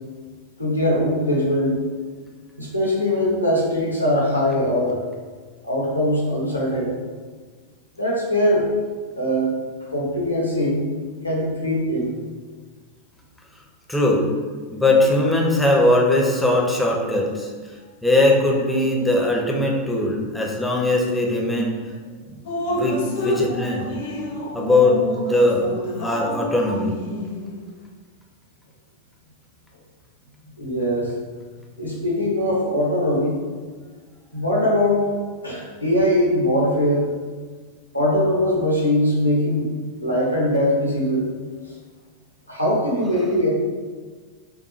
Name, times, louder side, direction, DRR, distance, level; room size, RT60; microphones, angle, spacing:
voice 1, 0.6-1.8 2.6-5.0 5.6-7.0 8.0-8.7 9.2-9.5 9.9-10.8 11.2-12.1 30.6-31.1 31.8-33.4 34.3-35.1 35.4-37.1 37.9-39.7 40.0-41.3 42.5-43.5, left 1 dB, 90° left, -4 dB, 1.1 m, -21 dB
voice 2, 13.9-14.2 14.7-17.5 18.0-21.8 22.3-22.4 22.6-23.9 24.5-25.7 26.0-27.0 43.1-43.3, left 2 dB, 5° left, -2 dB, 0.7 m, -20 dB
Drip, 22.5-27.7, left 1 dB, 55° left, 0.8 m, -28 dB
5.7 x 2.2 x 3.2 m, 1.5 s
figure-of-eight pair, 90°, 0 cm